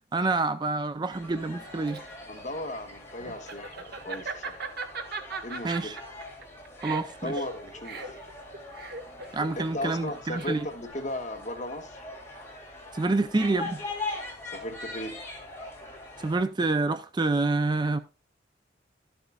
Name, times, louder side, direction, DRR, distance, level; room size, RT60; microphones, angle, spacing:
voice 1, 0.1-2.0 5.6-6.0 6.8-7.3 9.3-10.6 12.9-13.8 16.2-18.0, right 3 dB, 25° right, 0.4 m, -27 dB
sound 1, 1.1-16.4, left 2 dB, 15° left, 2.7 m, -42 dB
Laughter, 1.5-10.9, right 4 dB, 55° right, 1.3 m, -39 dB
voice 2, 2.3-4.6 5.4-5.9 7.2-8.2 9.6-12.0 14.4-15.2, left 1 dB, 40° left, 1.4 m, -36 dB
13.0 x 7.8 x 2.3 m
head